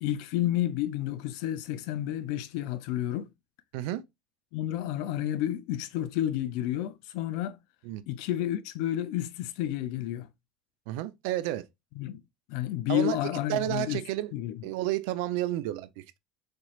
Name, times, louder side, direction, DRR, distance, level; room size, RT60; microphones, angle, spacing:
voice 1, 0.0-3.3 4.5-7.6 8.1-10.3 12.0-12.2 12.5-14.0 14.3-14.6, left 12 dB, 70° left, 0.4 m, -30 dB
voice 2, 10.9-11.6 12.9-13.2 13.5-14.3 14.6-16.2, right 15 dB, 80° right, 0.5 m, -31 dB
4.3 x 3.1 x 2.3 m
cardioid pair, 160°, 0 cm